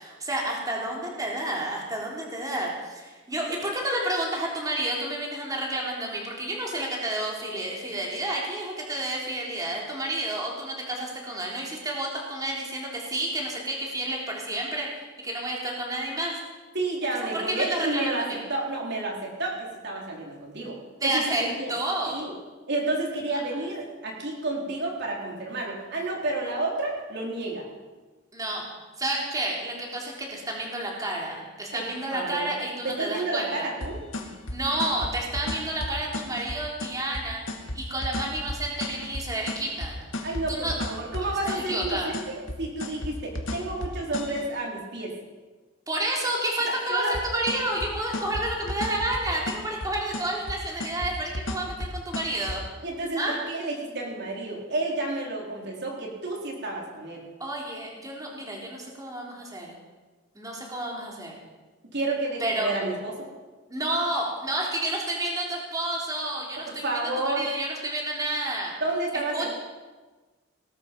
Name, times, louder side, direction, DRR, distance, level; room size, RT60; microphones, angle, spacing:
voice 1, 0.0-16.4 17.3-18.4 21.0-22.2 28.3-28.7 29.0-33.7 34.5-37.4 37.7-40.8 41.2-42.1 45.9-52.6 53.2-53.4 57.4-59.8 60.4-61.4 62.4-62.7 63.7-68.8 69.1-69.5, right 1 dB, 20° right, -2 dB, 3.5 m, -30 dB
voice 2, 16.7-18.2 18.5-20.8 21.0-21.7 22.1-22.3 22.7-27.7 31.7-31.8 32.1-32.5 32.8-34.3 40.2-45.1 46.9-47.1 52.8-57.2 61.9-63.3 66.6-67.5 68.8-69.5, right 2 dB, 55° right, -1 dB, 3.9 m, -30 dB
sound 1, 33.8-44.5 47.1-52.6, left 1 dB, 70° left, 2.0 m, -34 dB
19.0 x 13.0 x 5.4 m, 1.3 s
head